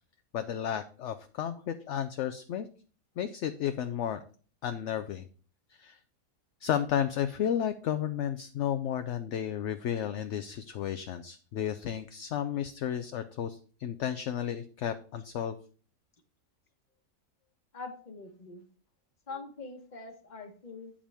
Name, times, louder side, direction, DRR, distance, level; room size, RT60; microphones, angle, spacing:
voice 1, 0.3-2.7 3.2-4.2 4.6-5.3 5.7-6.0 6.6-15.5, left 9 dB, 65° left, 9 dB, 0.8 m, -33 dB
voice 2, 17.7-18.6 19.3-20.9, left 3 dB, 35° left, 5 dB, 1.2 m, -43 dB
8.7 x 7.3 x 3.4 m, 0.41 s
omnidirectional pair, 1.5 m